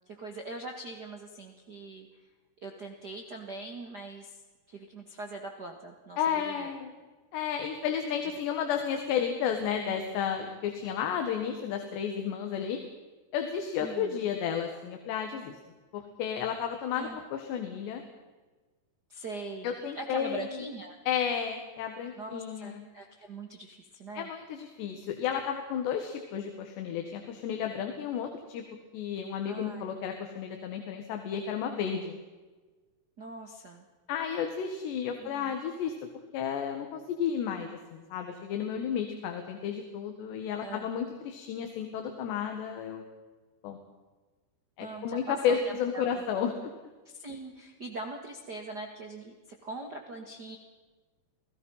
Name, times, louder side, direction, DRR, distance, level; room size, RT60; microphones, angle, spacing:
voice 1, 0.1-2.1 2.6-4.4 4.7-6.7 13.8-14.2 16.9-17.2 19.1-21.0 22.2-24.3 29.5-29.8 33.2-33.8 35.2-35.5 40.6-40.9 44.8-46.2 47.0-50.6, right 2 dB, 65° right, 3 dB, 0.9 m, -42 dB
voice 2, 6.2-6.9 7.3-12.8 13.3-15.6 15.9-18.0 19.6-20.5 21.1-22.8 24.2-28.6 28.9-32.2 34.1-35.9 36.3-43.0 43.6-43.8 44.8-46.7, left 8 dB, 75° left, 5 dB, 3.8 m, -32 dB
29.0 x 18.5 x 5.7 m, 1.3 s
omnidirectional pair, 5.1 m